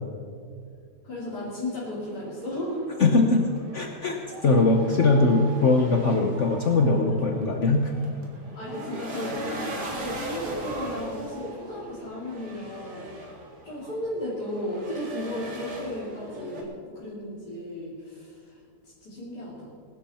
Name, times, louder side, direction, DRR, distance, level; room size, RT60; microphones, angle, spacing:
voice 1, 1.0-2.9 8.6-13.1 13.6-18.6 18.8-19.7, left 1 dB, 80° left, -8 dB, 3.7 m, -35 dB
sound 1, 1.1-16.6, right 1 dB, 85° right, 2.8 m, -39 dB
voice 2, 3.0-4.2 4.4-7.9, left 3 dB, 50° left, 3 dB, 1.3 m, -21 dB
21.0 x 12.0 x 4.4 m, 2.3 s
omnidirectional pair, 1.7 m